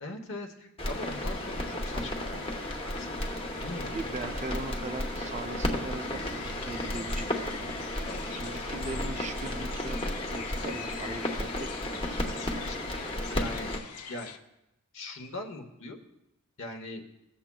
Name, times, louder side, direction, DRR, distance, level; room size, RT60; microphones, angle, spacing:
voice 1, 0.0-2.4 2.8-4.0 8.0-8.7 12.6-12.9 13.3-13.7 14.1-14.3 14.9-16.0 16.6-17.0, left 2 dB, 60° left, 4 dB, 1.0 m, -41 dB
sound 1, 0.8-13.8, left 1 dB, 25° left, 1.0 m, -33 dB
voice 2, 3.9-7.5 7.9-8.0 8.3-10.0 10.3-12.4, right 2 dB, 30° right, 8 dB, 0.4 m, -40 dB
sound 2, 4.2-8.2 8.7-9.8, right 2 dB, 85° right, 0.6 m, -46 dB
sound 3, 6.0-14.4, left 7 dB, 85° left, 0.6 m, -44 dB
17.0 x 7.1 x 2.3 m, 0.88 s
head